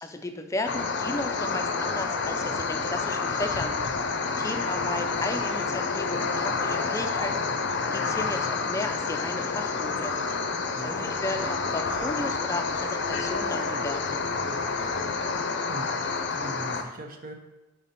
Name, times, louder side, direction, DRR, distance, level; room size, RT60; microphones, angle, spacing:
voice 1, 0.0-4.1 4.4-7.5 7.9-10.1 10.7-14.2, left 2 dB, 15° left, 5 dB, 0.4 m, -34 dB
sound 1, 0.7-16.8, left 4 dB, 65° left, 0.5 m, -29 dB
voice 2, 10.7-11.4 15.7-15.9 16.3-17.3, right 1 dB, 50° right, 4 dB, 0.8 m, -40 dB
5.3 x 5.0 x 4.1 m, 1.1 s
head